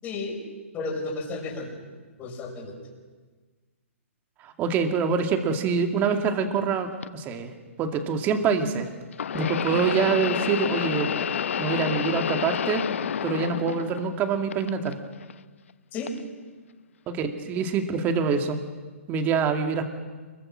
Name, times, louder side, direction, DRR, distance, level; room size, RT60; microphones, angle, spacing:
voice 1, 0.0-0.4 0.7-1.8 2.2-2.8 15.9-16.1, left 3 dB, 20° left, 1 dB, 5.9 m, -32 dB
voice 2, 4.4-7.5 7.8-8.9 9.3-11.1 11.6-12.9 13.2-15.0 17.1-18.6 19.1-19.8, right 5 dB, 25° right, 5 dB, 2.3 m, -25 dB
sound 1, 7.0-7.1 9.1-14.2 14.5-15.3 16.1-16.2 17.2-17.3, left 8 dB, 65° left, 0.8 m, -29 dB
26.0 x 22.5 x 6.4 m, 1.4 s
hypercardioid pair, 135°, 7 cm